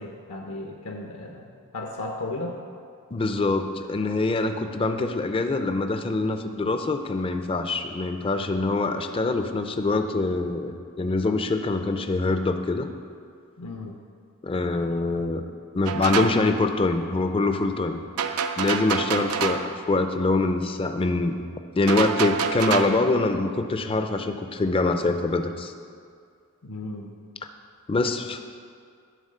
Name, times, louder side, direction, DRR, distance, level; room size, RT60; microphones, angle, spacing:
voice 1, 0.0-2.6 13.6-14.0 19.2-19.3 26.6-27.1, left 2 dB, 75° left, 1 dB, 0.7 m, -35 dB
voice 2, 3.1-12.9 14.4-15.4 15.7-18.0 18.6-21.4 21.8-25.7 27.9-28.4, left 2 dB, 25° left, 7 dB, 0.4 m, -24 dB
sound 1, 15.9-16.4 18.2-19.7 21.9-23.0, right 6 dB, 75° right, 0.5 m, -27 dB
11.0 x 3.9 x 6.6 m, 2.2 s
head